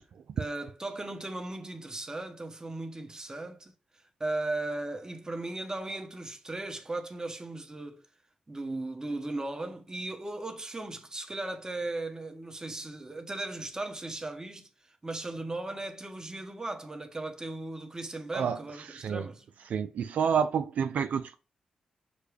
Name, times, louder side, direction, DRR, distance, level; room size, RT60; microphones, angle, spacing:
voice 1, 0.4-3.7 4.2-8.0 8.5-19.4, right 2 dB, 25° right, 1.1 m, -37 dB
voice 2, 18.9-19.3 19.7-21.4, right 7 dB, 75° right, 0.3 m, -29 dB
6.5 x 2.2 x 3.3 m
supercardioid pair, 45°, 3 cm